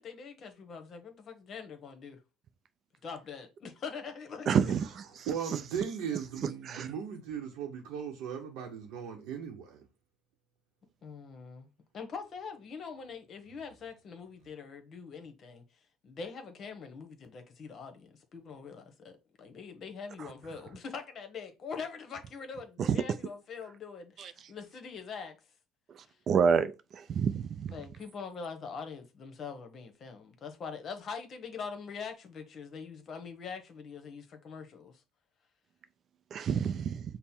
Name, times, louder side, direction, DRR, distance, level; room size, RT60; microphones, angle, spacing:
voice 1, 0.0-2.2 3.0-4.7 11.0-11.7 11.9-15.6 16.0-25.4 26.0-26.2 27.7-35.0, left 5 dB, 45° left, 1.0 m, -43 dB
voice 2, 4.5-4.9 6.7-6.9 24.2-24.3 26.3-27.7 36.3-37.0, right 6 dB, 45° right, 0.4 m, -28 dB
voice 3, 5.3-9.8, right 8 dB, 75° right, 0.8 m, -37 dB
5.4 x 2.1 x 4.3 m
supercardioid pair, 100°, 0 cm